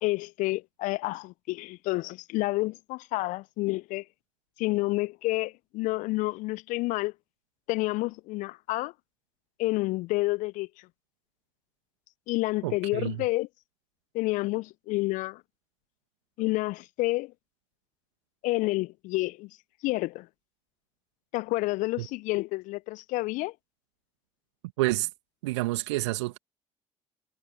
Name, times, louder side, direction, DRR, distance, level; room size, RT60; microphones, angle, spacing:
voice 1, 0.0-4.0 4.6-7.1 7.7-8.9 9.6-10.7 12.3-13.5 14.1-15.4 16.4-17.3 18.4-19.5 19.8-20.3 21.3-23.5, left 21 dB, 60° left, 0.9 m, -29 dB
voice 2, 12.6-13.2 22.0-22.1 24.8-25.1 25.4-26.4, right 20 dB, 70° right, 2.6 m, -29 dB
figure-of-eight pair, 55°, 15 cm